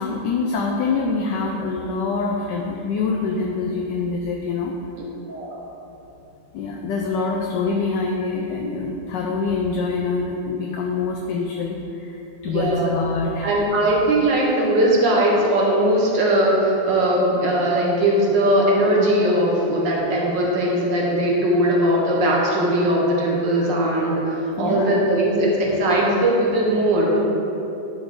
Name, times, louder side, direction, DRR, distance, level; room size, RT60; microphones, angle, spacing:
voice 1, 0.0-4.7 6.5-13.5 24.6-24.9, left 4 dB, 75° left, 0 dB, 1.2 m, -25 dB
voice 2, 5.3-5.6 12.5-12.9 13.4-27.2, right 1 dB, 75° right, -3 dB, 1.9 m, -19 dB
9.9 x 4.9 x 3.7 m, 2.8 s
omnidirectional pair, 2.0 m